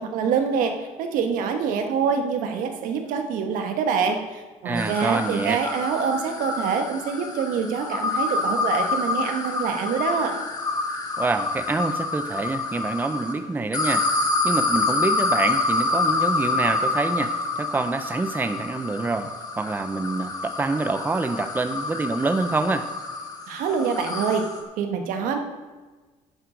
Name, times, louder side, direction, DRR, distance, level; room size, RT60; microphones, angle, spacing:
voice 1, 0.0-10.4 23.5-24.5 24.8-25.4, right 6 dB, 85° right, 5 dB, 1.5 m, -25 dB
voice 2, 4.6-5.6 11.2-14.1 14.4-22.9, right 3 dB, 15° right, 9 dB, 0.6 m, -26 dB
sound 1, 4.8-13.3 13.7-24.6, left 3 dB, 30° left, 1.9 m, -27 dB
10.5 x 9.4 x 5.2 m, 1.3 s
cardioid pair, 125°, 14 cm